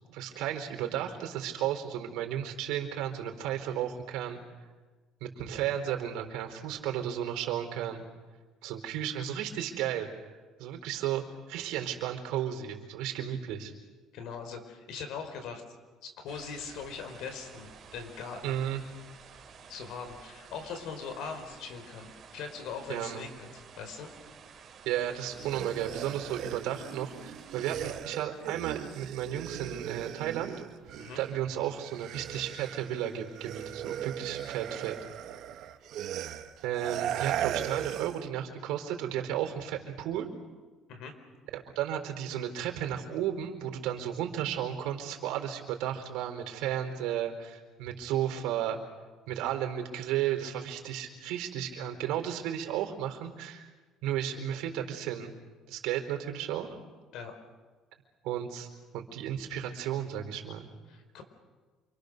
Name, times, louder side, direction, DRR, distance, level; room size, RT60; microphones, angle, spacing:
voice 1, 0.1-4.4 5.2-8.0 8.6-13.7 18.4-18.8 22.9-23.2 24.9-30.5 31.1-35.0 36.6-40.3 41.5-48.8 49.3-53.7 54.0-55.3 55.7-56.7 58.2-58.7 58.9-60.7, right 10 dB, 80° right, 4 dB, 4.4 m, -34 dB
voice 2, 14.1-15.6 16.0-18.6 19.7-24.1 31.0-31.2 40.9-41.1 57.1-57.3 60.9-61.2, left 5 dB, 65° left, 6 dB, 5.0 m, -41 dB
sound 1, 16.3-28.0, right 6 dB, 35° right, 4.3 m, -52 dB
sound 2, 25.2-31.5 31.7-38.3, right 11 dB, 55° right, 1.2 m, -38 dB
28.5 x 26.5 x 6.8 m, 1.3 s
cardioid pair, 160°, 0 cm